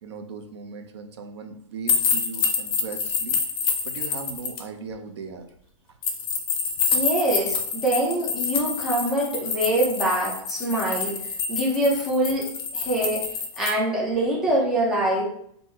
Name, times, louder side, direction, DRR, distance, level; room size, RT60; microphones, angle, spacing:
voice 1, 0.0-3.4 3.8-5.5, right 5 dB, 55° right, 6 dB, 0.5 m, -38 dB
sound 1, 1.9-4.6 6.0-13.7, left 5 dB, 45° left, 0.8 m, -27 dB
voice 2, 6.9-11.2 11.5-13.2 13.6-15.2, right 1 dB, ahead, -5 dB, 0.5 m, -24 dB
3.4 x 2.6 x 4.4 m, 0.67 s
supercardioid pair, 180°, 17 cm